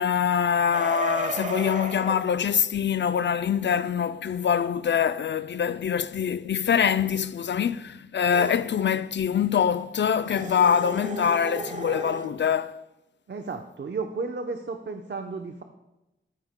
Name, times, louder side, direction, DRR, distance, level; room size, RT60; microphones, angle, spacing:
voice 1, 0.0-12.8, left 7 dB, 60° left, 0.4 m, -24 dB
sound 1, 0.7-2.3 8.3-8.7 10.2-12.3, right 3 dB, 40° right, 1.0 m, -34 dB
voice 2, 13.3-15.6, right 4 dB, 60° right, 0.8 m, -33 dB
14.5 x 13.0 x 2.2 m
cardioid pair, 55°, 20 cm